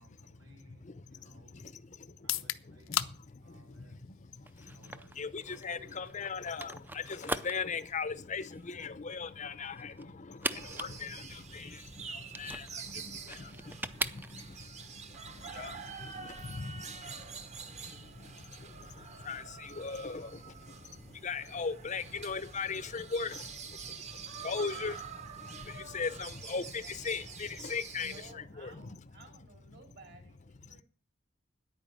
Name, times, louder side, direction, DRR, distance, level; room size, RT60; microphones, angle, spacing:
voice 1, 0.0-1.6 2.2-3.9 4.6-6.2, right 1 dB, 85° right, 4.5 m, -62 dB
voice 2, 0.8-2.3 2.7-4.8 5.2-29.0 29.7-29.8 30.7-30.8, left 5 dB, 35° left, 0.6 m, -40 dB
sound 1, 2.1-16.0, left 12 dB, 75° left, 0.7 m, -45 dB
sound 2, 4.5-14.7, right 2 dB, 10° right, 0.5 m, -41 dB
sound 3, 10.5-28.3, right 5 dB, 35° right, 1.1 m, -46 dB
voice 3, 28.0-30.8, right 2 dB, 55° right, 3.3 m, -56 dB
10.0 x 9.1 x 7.5 m
head